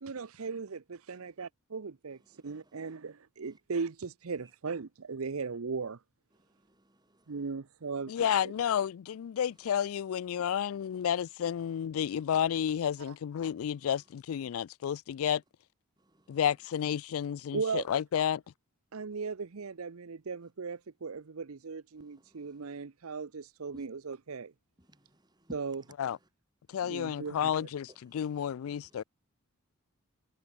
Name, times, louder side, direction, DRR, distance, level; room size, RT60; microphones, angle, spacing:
voice 1, 0.0-6.0 7.3-8.5 13.1-13.2 17.5-17.9 18.9-24.5 25.5-25.8 26.8-27.7, right 5 dB, 80° right, 0.7 m, -38 dB
voice 2, 2.2-3.0 3.4-3.6 6.3-7.5 9.4-9.5 10.5-10.6 12.1-12.2 13.6-13.9 16.0-16.4 22.0-22.8 23.7-23.9 24.8-25.9 26.7-27.0 27.9-28.5 28.8-29.0, right 1 dB, 20° right, 2.4 m, -58 dB
voice 3, 8.1-15.4 16.3-18.4 26.0-26.2 26.7-29.0, left 9 dB, 75° left, 0.3 m, -31 dB
head